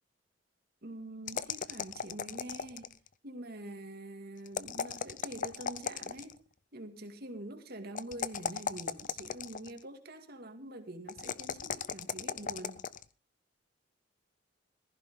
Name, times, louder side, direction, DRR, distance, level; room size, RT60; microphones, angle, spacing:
voice 1, 0.8-2.9 3.2-6.4 6.7-12.9, right 1 dB, 55° right, 2.1 m, -45 dB
sound 1, 1.3-3.1 4.5-6.4 7.9-9.8 11.1-13.0, left 6 dB, 45° left, 0.6 m, -37 dB
15.5 x 15.0 x 3.7 m
head